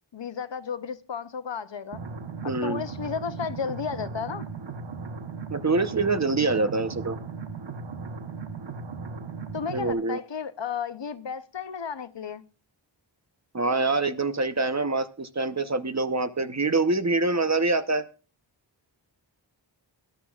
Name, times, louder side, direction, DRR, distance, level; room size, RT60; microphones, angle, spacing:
voice 1, 0.1-2.0 2.4-4.5 9.5-12.4, left 6 dB, 65° left, 0.8 m, -33 dB
sound 1, 1.9-9.9, right 4 dB, 70° right, 1.0 m, -37 dB
voice 2, 2.4-2.8 5.5-7.2 9.7-10.2 13.5-18.0, right 3 dB, 35° right, 0.9 m, -25 dB
20.5 x 11.5 x 2.4 m
wide cardioid pair, 55°, 46 cm